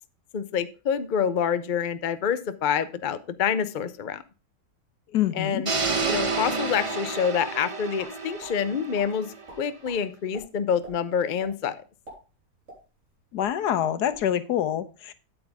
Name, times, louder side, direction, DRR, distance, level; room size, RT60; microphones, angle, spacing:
voice 1, 0.3-4.2 5.3-5.7 6.1-11.8, left 7 dB, 50° left, 0.6 m, -27 dB
voice 2, 5.1-5.7 13.3-15.1, left 10 dB, 75° left, 1.3 m, -26 dB
sound 1, 5.7-9.7, right 4 dB, 25° right, 0.7 m, -30 dB
sound 2, 8.0-8.5 8.9-9.1 9.5-10.0 10.3-10.4 10.8-10.9 11.4-11.5 11.9-13.1 13.4-13.5 13.9-14.2, right 1 dB, 45° right, 4.6 m, -45 dB
8.9 x 8.6 x 3.5 m
omnidirectional pair, 1.8 m